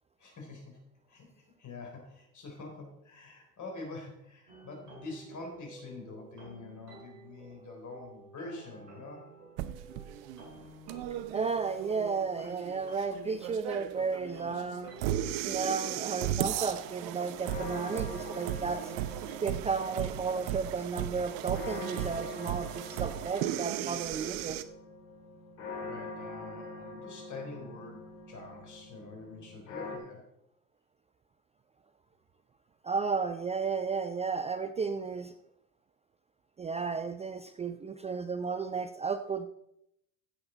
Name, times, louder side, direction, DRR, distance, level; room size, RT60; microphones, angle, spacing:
voice 1, 0.2-0.8 1.1-1.3 1.6-9.2 25.8-30.3, left 3 dB, 35° left, 1 dB, 4.1 m, -45 dB
sound 1, 4.5-16.3, right 2 dB, 75° right, 5.3 m, -52 dB
sound 2, 9.6-24.6, right 12 dB, 50° right, 0.8 m, -36 dB
voice 2, 11.3-14.9 15.4-18.9 19.4-24.6 32.8-35.3 36.6-39.5, right 5 dB, 15° right, 10 dB, 0.4 m, -33 dB
sound 3, 16.7-30.0, left 2 dB, 65° left, 3.4 m, -44 dB
15.0 x 7.9 x 4.0 m, 0.80 s
hypercardioid pair, 75°, 49 cm